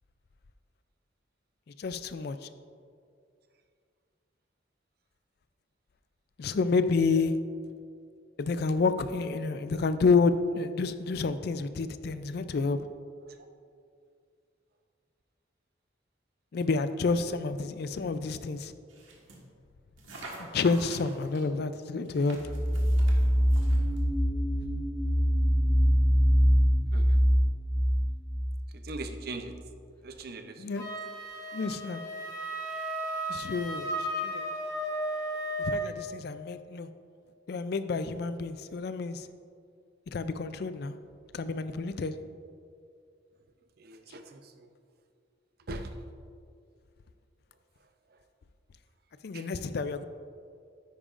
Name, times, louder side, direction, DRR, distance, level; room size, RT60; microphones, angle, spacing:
voice 1, 1.8-2.5 6.4-7.4 8.4-12.8 16.5-18.7 20.4-22.4 30.6-30.8 31.5-32.0 33.3-34.5 35.6-36.9 37.5-39.3 40.1-41.0 41.3-42.2 49.2-50.0, left 4 dB, 55° left, 11 dB, 0.4 m, -29 dB
sound 1, 18.9-19.4 20.0-21.5 22.1-24.0, right 2 dB, 90° right, 1.5 m, -47 dB
sound 2, 22.4-29.0, equal, 15° right, 1.1 m, -24 dB
voice 2, 28.8-29.5 30.0-30.6 43.8-44.7 45.7-45.9 49.3-49.4, right 2 dB, 55° right, 7 dB, 0.6 m, -40 dB
Wind instrument woodwind instrument, 30.8-35.9, right 1 dB, 20° left, 1.5 m, -34 dB
10.0 x 8.6 x 2.5 m, 2.3 s
head